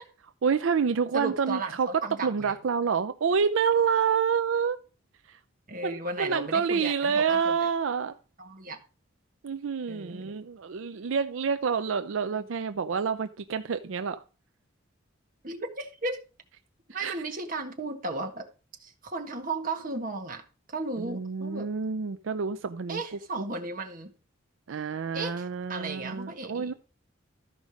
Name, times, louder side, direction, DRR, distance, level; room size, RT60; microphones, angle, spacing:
voice 1, 0.4-1.9 2.2-4.8 5.8-8.1 9.4-14.2 17.0-17.2 21.0-23.0 24.7-26.7, right 6 dB, 80° right, 0.5 m, -28 dB
voice 2, 1.1-2.5 5.7-7.7 8.4-8.8 9.9-10.3 12.4-12.5 15.4-16.2 16.9-18.5 18.8-20.4 20.7-21.7 22.9-24.1 25.1-26.7, right 3 dB, 45° right, 1.5 m, -35 dB
13.0 x 5.2 x 5.0 m
head